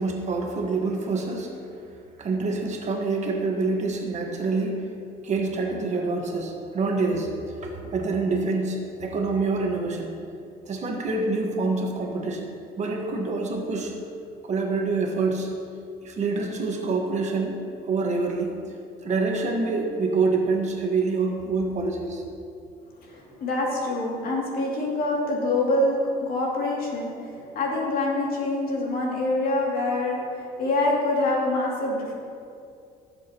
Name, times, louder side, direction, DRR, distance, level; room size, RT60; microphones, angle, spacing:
voice 1, 0.0-1.5 2.2-4.9 5.2-7.3 7.6-10.2 10.7-12.5 12.8-13.9 14.4-15.5 16.0-18.7 19.0-22.2, right 3 dB, 45° right, 1 dB, 1.4 m, -26 dB
voice 2, 23.0-32.1, left 2 dB, 60° left, -3 dB, 2.6 m, -25 dB
16.0 x 7.5 x 3.0 m, 2.5 s
cardioid pair, 110°, 17 cm